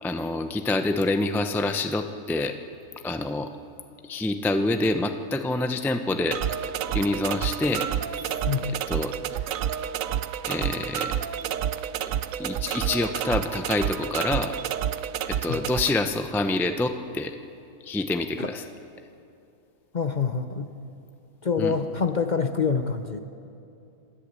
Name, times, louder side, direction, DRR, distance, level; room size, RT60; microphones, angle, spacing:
voice 1, 0.0-2.6 3.0-3.5 4.0-6.4 6.9-7.9 8.9-9.1 10.5-11.1 12.4-14.5 15.3-17.4 17.8-18.7 21.6-21.8, left 2 dB, ahead, 7 dB, 0.5 m, -26 dB
sound 1, 6.3-15.9, right 10 dB, 80° right, 1.0 m, -29 dB
voice 2, 19.9-20.7 21.4-23.2, left 5 dB, 40° left, 8 dB, 0.8 m, -26 dB
27.0 x 12.0 x 8.4 m, 2.6 s
omnidirectional pair, 1.4 m